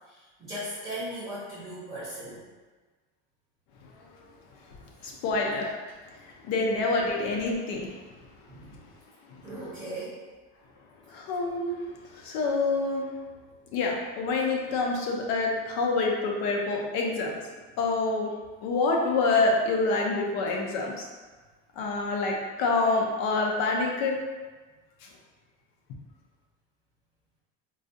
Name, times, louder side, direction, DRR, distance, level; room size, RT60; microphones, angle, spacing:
voice 1, 0.1-2.5 4.7-4.8 5.1-5.3 6.6-7.1 8.5-8.8 9.4-10.2, right 1 dB, 10° right, -11 dB, 0.7 m, -38 dB
voice 2, 5.0-5.7 6.5-7.9 11.1-11.8 12.1-13.1 13.7-17.4 17.8-18.3 18.6-21.1 21.8-24.2, left 3 dB, 85° left, 0 dB, 0.7 m, -26 dB
3.8 x 2.4 x 2.6 m, 1.3 s
cardioid pair, 175°, 30 cm